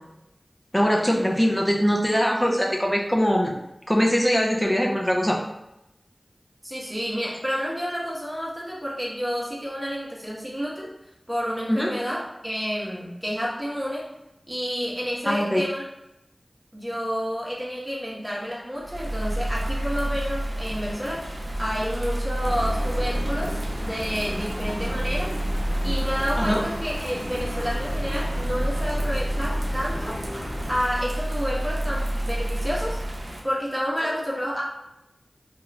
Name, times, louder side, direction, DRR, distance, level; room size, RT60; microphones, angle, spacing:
voice 1, 0.7-3.6 3.9-5.4 11.7-11.9 15.3-15.6 26.4-26.6, equal, 10° left, 0 dB, 0.6 m, -22 dB
voice 2, 6.6-10.9 11.3-14.1 14.5-15.8 16.7-21.3 21.6-25.3 25.8-30.2 30.7-33.0 33.4-34.6, equal, 15° right, -5 dB, 1.0 m, -30 dB
Bird vocalization bird call bird song / Rain, 18.8-33.4, right 1 dB, 75° right, 0.5 m, -29 dB
sound 1, 22.4-30.8, equal, 45° left, 1.2 m, -34 dB
2.5 x 2.3 x 3.1 m, 0.89 s
wide cardioid pair, 40°, 0 cm